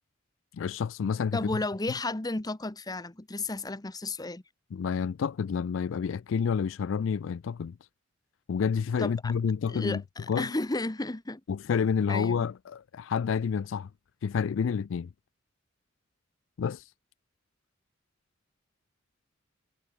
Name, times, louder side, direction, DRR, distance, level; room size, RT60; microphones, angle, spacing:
voice 1, 0.5-1.5 4.7-7.8 8.5-10.0 10.3-10.5 11.5-13.9 14.2-15.1 16.6-16.8, left 6 dB, 75° left, 0.4 m, -29 dB
voice 2, 1.3-4.4 9.0-9.3 9.7-11.4 12.1-12.5, left 2 dB, 20° left, 0.9 m, -33 dB
head